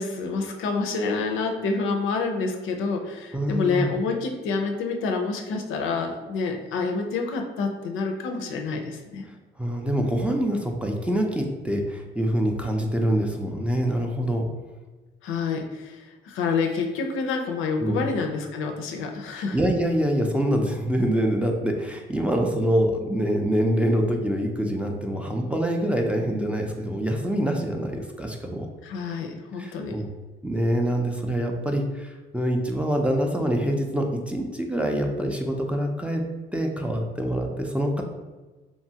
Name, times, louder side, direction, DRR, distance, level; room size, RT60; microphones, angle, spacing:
voice 1, 0.0-9.3 15.2-19.6 28.8-30.0, left 4 dB, 85° left, 3 dB, 0.4 m, -28 dB
voice 2, 3.3-3.9 9.6-14.5 17.8-18.1 19.5-28.7 29.6-30.1 30.4-36.2 36.5-38.0, equal, 5° right, 2 dB, 0.4 m, -25 dB
2.9 x 2.3 x 2.7 m, 1.2 s
cardioid pair, 90°, 20 cm